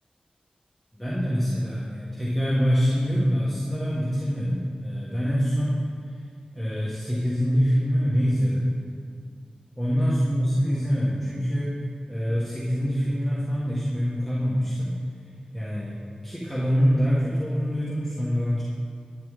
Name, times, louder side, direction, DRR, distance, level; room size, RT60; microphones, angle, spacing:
voice 1, 1.0-5.8 6.5-8.8 9.8-11.7 12.1-14.9 15.5-18.6, equal, 5° left, -8 dB, 1.8 m, -25 dB
12.0 x 11.5 x 3.8 m, 2.2 s
wide cardioid pair, 85°, 3 cm